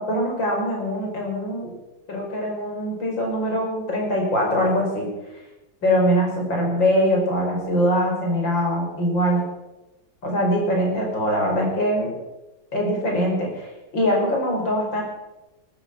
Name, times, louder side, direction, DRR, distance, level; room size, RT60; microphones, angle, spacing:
voice 1, 0.1-1.7 2.1-5.1 5.8-9.4 10.2-12.1 12.7-13.7 13.9-15.0, equal, 85° left, 0 dB, 5.8 m, -22 dB
19.0 x 13.0 x 5.9 m, 1.0 s
omnidirectional pair, 2.0 m